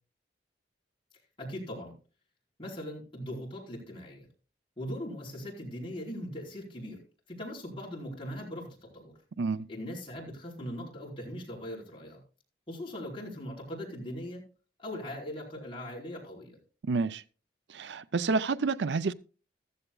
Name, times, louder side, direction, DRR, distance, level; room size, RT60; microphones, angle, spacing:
voice 1, 1.4-1.9 2.6-4.3 4.8-7.0 7.3-9.1 9.7-12.2 12.7-14.5 14.8-16.6, equal, 30° left, 4.5 m, -40 dB
voice 2, 9.4-9.7 16.8-17.2 17.7-19.1, right 4 dB, 75° right, 0.5 m, -29 dB
15.0 x 14.0 x 2.3 m
head